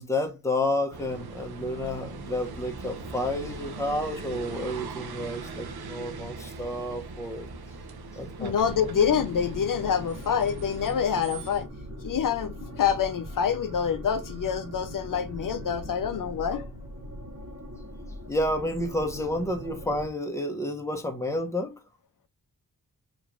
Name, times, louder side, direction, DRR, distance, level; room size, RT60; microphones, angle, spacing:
voice 1, 0.0-7.5 8.1-8.5 18.3-21.7, left 1 dB, 10° left, 0.9 m, -30 dB
sound 1, 0.9-11.6, right 4 dB, 90° right, 0.9 m, -40 dB
voice 2, 8.4-11.7 12.0-16.7, left 7 dB, 60° left, 0.5 m, -26 dB
sound 2, 8.6-20.1, equal, 45° right, 1.1 m, -40 dB
4.9 x 3.0 x 2.4 m
wide cardioid pair, 150°, 36 cm